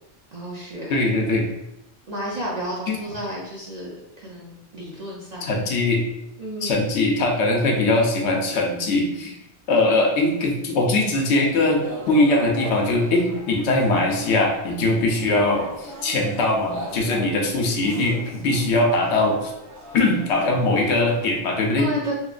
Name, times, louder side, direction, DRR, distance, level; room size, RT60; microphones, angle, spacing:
voice 1, 0.3-1.0 2.1-5.5 6.4-6.8 7.6-7.9 21.8-22.1, right 1 dB, 50° right, -5 dB, 0.5 m, -32 dB
voice 2, 0.9-1.5 2.9-3.0 5.4-6.0 6.6-9.3 9.7-19.5 19.9-21.9, left 2 dB, 80° left, 1 dB, 0.9 m, -21 dB
sound 1, 11.8-21.4, equal, 85° right, 1.0 m, -38 dB
2.9 x 2.1 x 2.3 m, 0.87 s
omnidirectional pair, 1.1 m